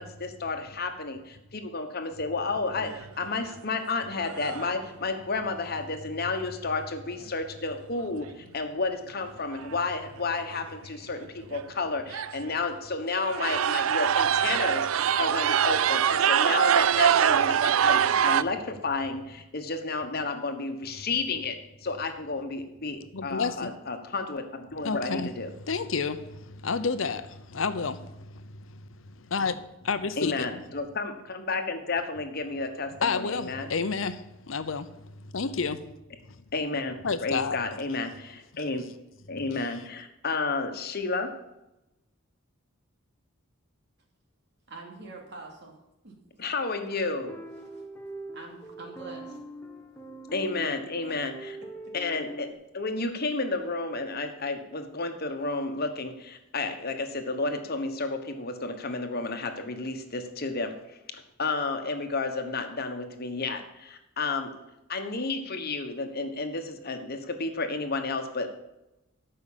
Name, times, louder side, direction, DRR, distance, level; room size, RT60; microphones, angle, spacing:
voice 1, 0.0-21.6 21.8-25.5 30.2-33.7 36.5-38.9 39.3-41.3 46.4-47.4 50.3-51.6 51.9-52.5 52.7-64.5 64.9-68.5, left 3 dB, 50° left, 6 dB, 1.3 m, -31 dB
sound 1, 2.8-3.2 3.8-3.9 4.2-4.8 8.0-8.1 9.2-9.3 9.5-9.9 10.4-10.5 11.2-11.3 11.5-11.7 12.1-12.5 13.1-18.4, right 8 dB, 90° right, 0.4 m, -24 dB
voice 2, 23.1-23.7 24.8-25.3 25.7-28.8 29.2-30.5 33.0-34.9 35.2-35.9 37.0-37.6, left 4 dB, 70° left, 12 dB, 0.8 m, -30 dB
voice 3, 44.7-45.7 46.0-46.4 47.5-47.8 48.3-49.4 52.2-52.5, right 3 dB, 55° right, 1 dB, 2.7 m, -45 dB
sound 2, 47.2-52.5, right 1 dB, 10° left, 1.0 m, -42 dB
13.5 x 5.6 x 7.4 m, 0.93 s
head